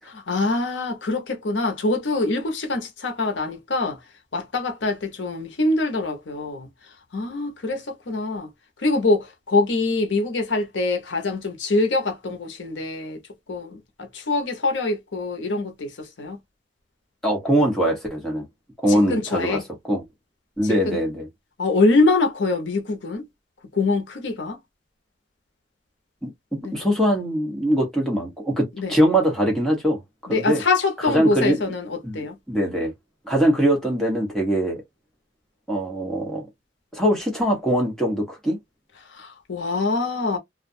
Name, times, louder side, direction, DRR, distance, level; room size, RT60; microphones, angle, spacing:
voice 1, 0.1-4.0 4.3-8.5 8.8-13.2 13.5-16.4 18.9-19.6 20.6-21.0 21.6-23.3 23.7-24.6 26.6-26.8 28.8-29.0 30.3-32.4 39.1-40.4, left 3 dB, 85° left, 0.8 m, -24 dB
voice 2, 17.2-18.4 18.8-19.6 19.8-20.0 20.6-21.3 26.2-26.3 26.7-30.0 30.3-30.6 31.0-31.6 32.0-32.9 33.2-34.8 35.7-36.5 36.9-38.6, equal, ahead, 1.0 m, -22 dB
2.4 x 2.2 x 2.6 m
head